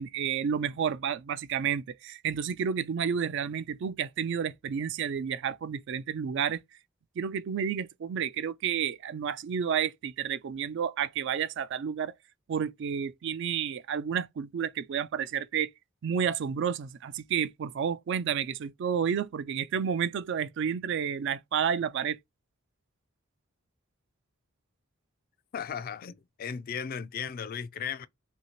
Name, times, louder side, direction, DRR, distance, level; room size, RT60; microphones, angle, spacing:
voice 1, 0.0-6.6 7.2-12.1 12.5-15.7 16.0-22.2, right 7 dB, 60° right, 0.3 m, -30 dB
voice 2, 25.5-28.1, left 7 dB, 45° left, 0.3 m, -36 dB
2.8 x 2.7 x 2.9 m
head